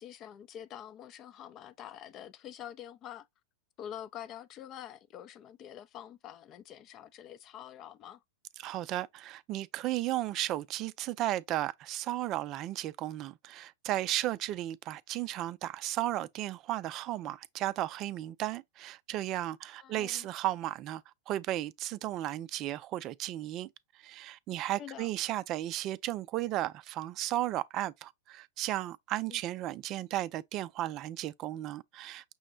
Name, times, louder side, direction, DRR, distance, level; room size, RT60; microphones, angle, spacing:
voice 1, 0.0-3.3 3.8-8.2 19.8-20.3 24.8-25.1 29.3-29.4, left 10 dB, 40° left, 0.5 m, -46 dB
voice 2, 8.6-21.0 21.3-23.7 24.0-32.3, right 14 dB, 40° right, 0.4 m, -34 dB
6.1 x 2.1 x 3.7 m
hypercardioid pair, 100°, 0 cm